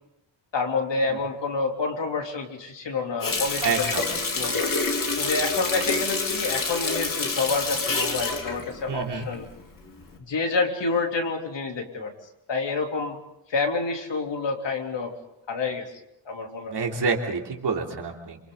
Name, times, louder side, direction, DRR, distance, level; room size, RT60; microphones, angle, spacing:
voice 1, 0.5-3.9 4.3-4.7 5.2-9.5 10.3-12.1 12.5-13.2 13.5-15.1 15.5-15.9 16.3-16.7, left 4 dB, 65° left, 2 dB, 3.5 m, -28 dB
Water tap faucet, 3.2-9.6 10.0-10.2, left 3 dB, 45° left, 3.1 m, -27 dB
voice 2, 3.6-4.1 8.9-9.3 16.7-18.4, right 4 dB, 60° right, 1 dB, 3.2 m, -28 dB
28.5 x 27.5 x 4.0 m, 0.84 s
wide cardioid pair, 160°, 46 cm